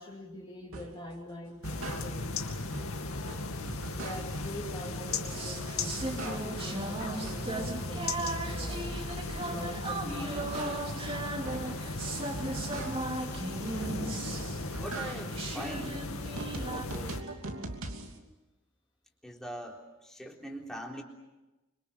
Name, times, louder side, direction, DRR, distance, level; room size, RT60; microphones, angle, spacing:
voice 1, 0.0-2.4 3.9-9.0 9.5-10.7, left 1 dB, 20° left, -2 dB, 2.7 m, -44 dB
sound 1, 0.7-1.0 1.5-2.4 2.7-4.5 4.9-5.5 5.8-6.8 7.1-9.8 10.2-13.2 13.6-14.2 14.6-18.2, right 2 dB, 75° right, 2.9 m, -42 dB
sound 2, 1.6-17.2, left 2 dB, 85° left, 2.4 m, -37 dB
sound 3, 5.3-16.9, right 2 dB, 25° right, 2.6 m, -37 dB
voice 2, 14.8-16.0 16.6-17.3 19.2-21.0, equal, ahead, -1 dB, 3.7 m, -42 dB
26.0 x 25.5 x 7.2 m, 1.0 s
head